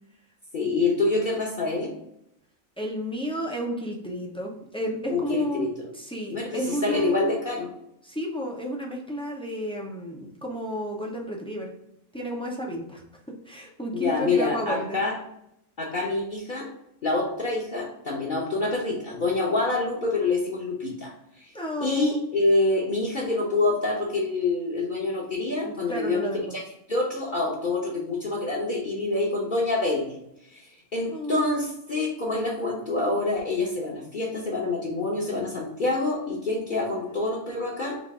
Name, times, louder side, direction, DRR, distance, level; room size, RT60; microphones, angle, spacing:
voice 1, 0.5-1.9 5.1-5.9 6.3-7.7 13.9-15.2 15.8-16.7 17.0-21.5 21.8-26.6 26.9-30.2 30.5-38.0, left 3 dB, 45° left, -4 dB, 0.9 m, -26 dB
voice 2, 2.8-5.7 5.9-7.4 8.0-11.7 12.1-13.0 13.5-15.0 21.5-22.2 25.6-26.4 31.1-31.5, equal, 10° left, -1 dB, 0.3 m, -32 dB
4.0 x 2.4 x 4.7 m, 0.77 s
omnidirectional pair, 1.3 m